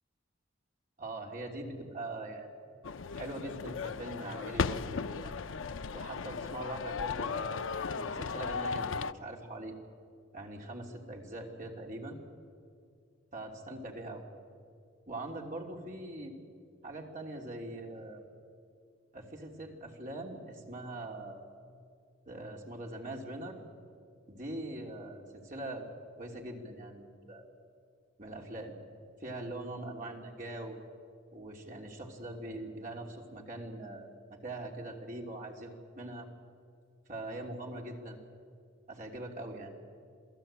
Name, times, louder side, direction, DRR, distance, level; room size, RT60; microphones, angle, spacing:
voice 1, 1.0-2.5 3.1-5.4 5.9-7.7 7.9-9.8 10.3-12.2 13.3-14.3 15.1-16.3 16.8-18.2 19.1-21.5 22.3-23.6 24.3-25.9 26.2-27.5 28.2-28.8 29.2-30.8 31.3-36.3 37.1-38.2 38.9-39.7, right 1 dB, 40° right, 0 dB, 3.1 m, -42 dB
sound 1, 2.8-9.1, left 5 dB, 80° left, 0.5 m, -36 dB
28.0 x 17.0 x 8.9 m, 2.3 s
head